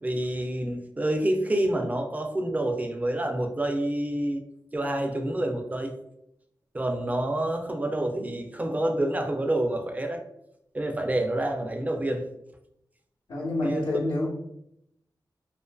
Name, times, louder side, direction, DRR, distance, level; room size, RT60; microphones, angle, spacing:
voice 1, 0.0-4.4 4.7-6.0 6.7-10.2 10.7-12.2 13.6-13.9, right 1 dB, 20° right, 4 dB, 0.3 m, -28 dB
voice 2, 13.3-14.3, left 1 dB, 90° left, -8 dB, 0.7 m, -27 dB
2.5 x 2.4 x 2.2 m, 0.78 s
wide cardioid pair, 105°, 8 cm